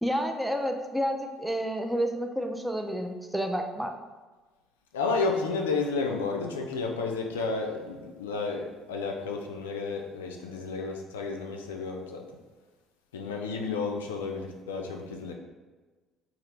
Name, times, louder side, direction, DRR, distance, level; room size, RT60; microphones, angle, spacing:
voice 1, 0.0-3.9, equal, 5° right, 4 dB, 0.4 m, -30 dB
voice 2, 4.9-12.3 13.1-15.3, left 4 dB, 80° left, 1 dB, 0.3 m, -31 dB
2.8 x 2.4 x 3.2 m, 1.3 s
hypercardioid pair, 55°, 0 cm